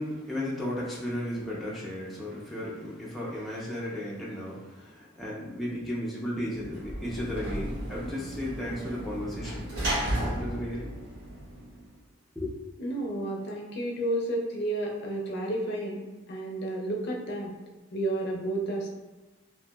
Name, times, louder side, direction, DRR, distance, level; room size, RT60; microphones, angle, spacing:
voice 1, 0.0-9.8 10.2-10.9 12.4-12.5, left 1 dB, ahead, -7 dB, 0.4 m, -34 dB
Sliding door / Slam, 6.5-11.9, right 1 dB, 60° right, 0.8 m, -34 dB
voice 2, 12.8-17.5 17.9-19.0, right 1 dB, 55° left, -1 dB, 0.5 m, -31 dB
2.8 x 2.7 x 2.2 m, 1.1 s
head